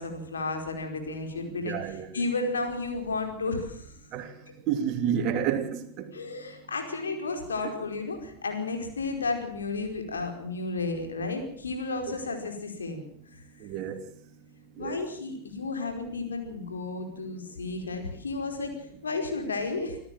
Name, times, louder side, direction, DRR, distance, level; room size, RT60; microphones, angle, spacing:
voice 1, 0.0-1.8 2.1-3.9 6.1-13.0 13.3-13.4 14.8-20.0, left 3 dB, 70° left, 4.9 m, -32 dB
voice 2, 1.5-2.1 4.1-4.3 4.7-6.1 12.1-12.2 13.6-14.0 14.8-15.0, right 8 dB, 40° right, 2.9 m, -30 dB
26.0 x 14.0 x 7.5 m
figure-of-eight pair, 90°, 0 cm